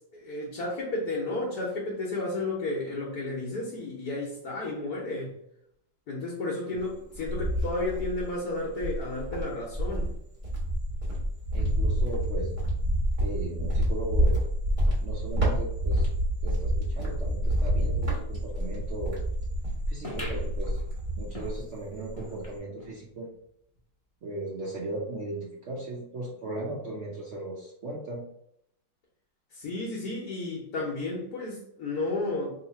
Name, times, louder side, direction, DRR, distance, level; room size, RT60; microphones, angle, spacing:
voice 1, 0.1-5.3 6.1-10.1 29.5-32.5, left 2 dB, 55° left, -5 dB, 1.2 m, -32 dB
Cricket, 6.8-8.3 8.8-21.7 22.0-22.6, equal, 30° right, 1.2 m, -28 dB
voice 2, 11.5-12.5 13.2-14.4 15.0-16.1 16.4-19.2 19.9-20.8 21.2-23.3 24.2-28.2, right 2 dB, 90° right, -4 dB, 0.6 m, -37 dB
sound 1, 20.0-23.0 23.4-23.5 23.7-23.8 24.6-24.7, left 1 dB, 25° left, 0.7 m, -44 dB
3.2 x 2.9 x 4.0 m, 0.74 s
omnidirectional pair, 2.2 m